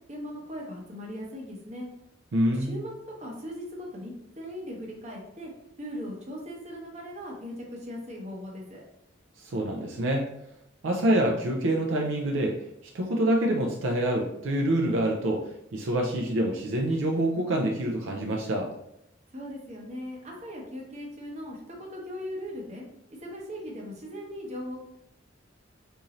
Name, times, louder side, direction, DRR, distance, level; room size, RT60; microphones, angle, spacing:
voice 1, 0.1-1.9 2.5-2.9 3.2-5.5 5.8-8.8 19.3-22.8 23.1-24.8, equal, 35° right, -1 dB, 0.8 m, -39 dB
voice 2, 2.3-2.8 9.4-10.3 10.8-12.6 12.9-18.7, right 1 dB, 70° right, 1 dB, 0.5 m, -26 dB
3.8 x 2.7 x 2.9 m, 0.78 s
head